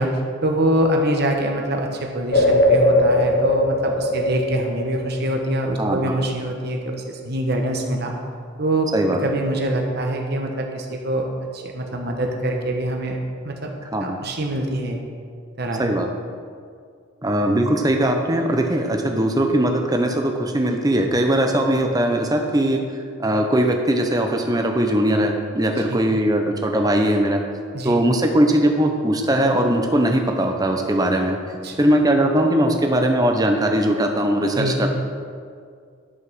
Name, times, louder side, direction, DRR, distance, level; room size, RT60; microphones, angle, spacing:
voice 1, 0.0-8.1 8.6-11.3 11.5-13.2 13.4-13.7 14.0-15.0 15.6-15.8 25.9-26.0 27.7-27.9 31.6-31.8 34.5-34.9, right 1 dB, 50° right, 2 dB, 1.2 m, -24 dB
sound 1, 2.3-5.9, left 1 dB, 50° left, 0.8 m, -19 dB
voice 2, 5.8-6.2 8.9-9.2 13.9-14.2 15.8-16.1 17.2-22.8 23.2-27.4 27.8-31.4 31.8-34.9, right 1 dB, 20° right, 3 dB, 0.8 m, -20 dB
11.5 x 5.5 x 6.2 m, 2.2 s
head